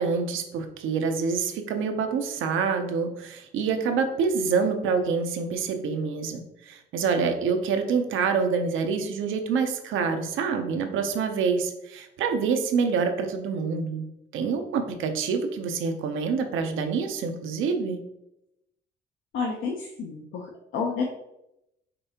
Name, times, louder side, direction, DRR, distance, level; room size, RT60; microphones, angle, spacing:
voice 1, 0.0-14.1 14.3-18.0, right 5 dB, 80° right, 6 dB, 0.7 m, -26 dB
voice 2, 19.3-21.0, left 5 dB, 75° left, 0 dB, 0.7 m, -30 dB
5.3 x 3.3 x 2.8 m, 0.85 s
cardioid pair, 90°, 20 cm